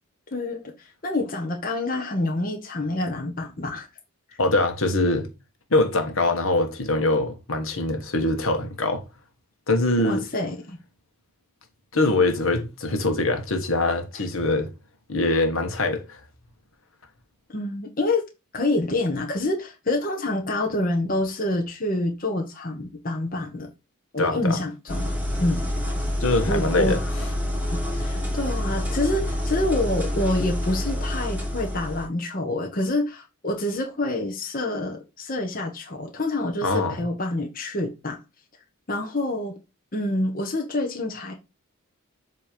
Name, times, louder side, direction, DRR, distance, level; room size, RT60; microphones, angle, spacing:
voice 1, 0.3-3.9 4.3-4.4 10.0-10.8 17.5-18.2 18.5-23.7 24.1-25.1 25.4-25.7 26.4-27.0 27.7-38.2 38.9-39.6 39.9-41.3, left 2 dB, 40° left, 1.0 m, -27 dB
voice 2, 4.4-5.3 5.7-9.0 9.7-10.3 11.9-14.7 15.1-16.2 24.2-24.6 26.2-27.0 36.6-37.0, left 2 dB, 65° left, 1.3 m, -23 dB
sound 1, 24.9-32.1, left 1 dB, 5° right, 2.2 m, -27 dB
7.6 x 3.1 x 5.1 m
head